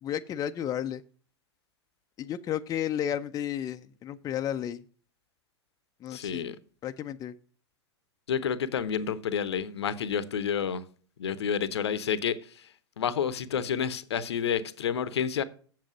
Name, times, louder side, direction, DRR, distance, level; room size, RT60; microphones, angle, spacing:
voice 1, 0.0-1.0 2.2-4.8 6.0-6.6 6.8-7.3, left 10 dB, 25° left, 0.5 m, -32 dB
voice 2, 6.1-6.6 8.3-10.8 11.2-12.7 13.0-15.4, left 7 dB, 70° left, 0.8 m, -29 dB
7.6 x 7.3 x 5.0 m
figure-of-eight pair, 90°, 14 cm